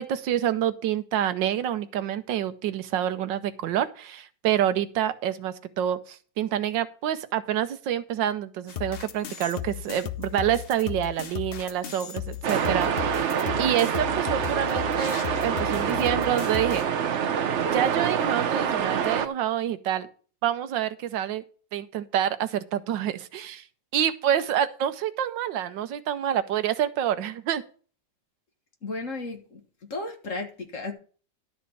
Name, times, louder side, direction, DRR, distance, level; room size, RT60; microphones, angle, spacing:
voice 1, 0.0-13.2 13.6-16.9 17.7-20.1 20.4-21.4 21.7-23.6 23.9-27.6, right 10 dB, 80° right, 1.4 m, -27 dB
sound 1, 8.7-16.9, left 10 dB, 75° left, 0.5 m, -35 dB
sound 2, 12.4-19.3, right 8 dB, 55° right, 0.8 m, -26 dB
voice 2, 28.8-29.6 29.9-30.9, left 2 dB, 45° left, 1.8 m, -34 dB
12.0 x 4.2 x 7.0 m
omnidirectional pair, 2.0 m